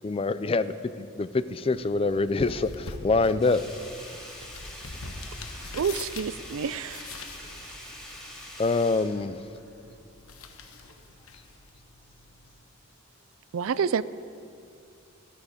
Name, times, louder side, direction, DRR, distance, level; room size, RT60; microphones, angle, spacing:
voice 1, 0.0-3.6 8.6-9.4, left 3 dB, 25° left, 13 dB, 0.4 m, -25 dB
sound 1, 1.6-12.6, left 3 dB, 80° left, 1.2 m, -45 dB
Sink (filling or washing), 3.4-9.9 10.2-10.3, left 1 dB, 5° left, 2.6 m, -44 dB
voice 2, 4.5-5.6 5.9-6.1 7.8-8.4 10.7-10.9, left 3 dB, 55° left, -2 dB, 2.9 m, -58 dB
voice 3, 5.7-7.0 13.5-14.0, right 6 dB, 65° right, 17 dB, 0.4 m, -28 dB
13.5 x 13.0 x 5.1 m, 2.5 s
head